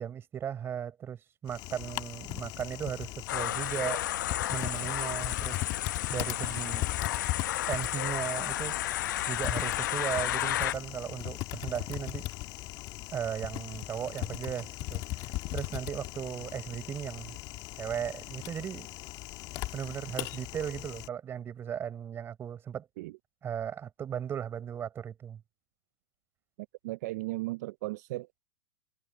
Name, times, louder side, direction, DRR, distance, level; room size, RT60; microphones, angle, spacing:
voice 1, 0.0-4.0 4.5-5.6 6.1-6.9 7.7-9.0 9.3-12.3 13.1-17.4 17.8-18.9 19.7-22.9 23.4-25.4, right 9 dB, 25° right, 4.2 m, -36 dB
Typing, 1.5-21.1, left 18 dB, 40° left, 1.5 m, -38 dB
sound 1, 3.3-10.7, left 13 dB, 75° left, 0.8 m, -32 dB
voice 2, 26.8-28.4, right 20 dB, 60° right, 0.4 m, -36 dB
supercardioid pair, 140°, 10 cm